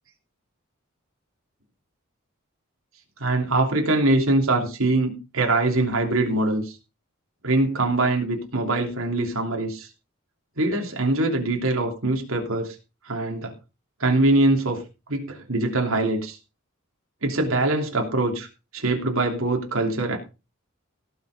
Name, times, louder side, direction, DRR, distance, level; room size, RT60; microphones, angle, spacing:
voice 1, 3.2-6.8 7.4-9.9 10.6-12.7 13.1-13.5 14.0-14.8 15.1-16.4 17.2-18.5 18.7-20.2, right 2 dB, 80° right, 2 dB, 3.0 m, -23 dB
17.5 x 6.0 x 5.1 m, 0.30 s
head